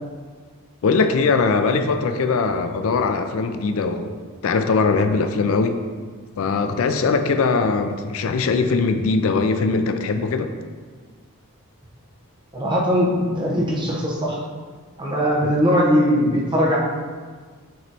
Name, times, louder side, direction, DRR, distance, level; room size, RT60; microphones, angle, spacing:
voice 1, 0.8-4.1 4.4-5.7 6.4-10.5, left 4 dB, 65° left, 7 dB, 0.4 m, -21 dB
voice 2, 12.5-14.4 15.0-16.8, equal, 20° right, -4 dB, 1.0 m, -20 dB
7.4 x 3.1 x 4.1 m, 1.5 s
head